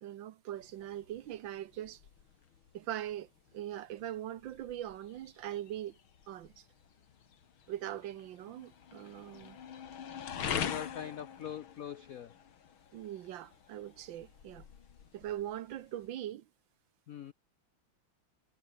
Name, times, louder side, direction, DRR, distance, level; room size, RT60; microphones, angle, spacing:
voice 1, 0.0-2.0 2.7-6.0 6.3-6.6 7.7-9.6 12.9-14.6 15.1-16.5, right 12 dB, 70° right, 1.4 m, -41 dB
sound 1, 0.6-16.1, left 8 dB, 70° left, 2.5 m, -45 dB
voice 2, 10.7-12.3 17.1-17.3, left 9 dB, 90° left, 0.7 m, -42 dB
omnidirectional pair, 2.4 m